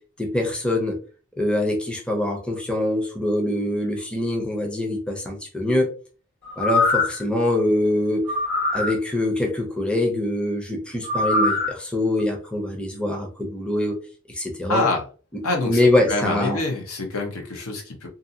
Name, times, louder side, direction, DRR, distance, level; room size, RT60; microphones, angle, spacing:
voice 1, 0.2-1.0 1.4-5.9 6.6-8.2 8.7-13.9 14.3-14.8 15.6-16.6, left 1 dB, 5° left, 1 dB, 0.5 m, -24 dB
sound 1, 6.4-7.2 8.3-8.9 11.0-11.7 12.2-12.3, left 2 dB, 55° left, 1.4 m, -22 dB
voice 2, 14.7-15.0 15.4-18.1, left 2 dB, 75° left, 2 dB, 0.8 m, -26 dB
2.6 x 2.5 x 2.6 m, 0.38 s
head